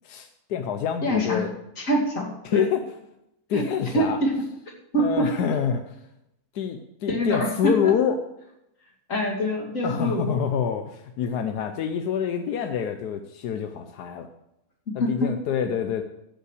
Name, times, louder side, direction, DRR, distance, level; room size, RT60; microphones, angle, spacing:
voice 1, 0.0-1.5 2.4-2.8 3.5-4.2 5.0-5.9 6.5-8.2 9.8-14.3 14.9-16.0, left 7 dB, 90° left, 6 dB, 1.3 m, -26 dB
voice 2, 1.0-1.4 1.8-2.7 3.5-3.6 3.9-4.3 4.9-5.3 7.1-7.9 9.1-10.4 15.0-15.3, equal, 55° left, -1 dB, 2.8 m, -25 dB
15.0 x 5.5 x 6.4 m, 0.84 s
omnidirectional pair, 1.7 m